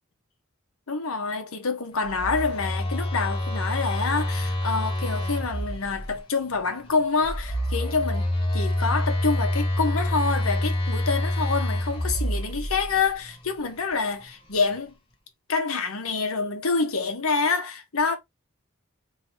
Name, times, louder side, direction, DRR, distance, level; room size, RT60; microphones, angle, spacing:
voice 1, 0.9-14.9 15.5-18.2, left 4 dB, 75° left, 1.0 m, -27 dB
Telephone, 2.1-6.1 7.2-13.0, left 1 dB, 25° left, 1.0 m, -27 dB
3.0 x 2.8 x 4.2 m
head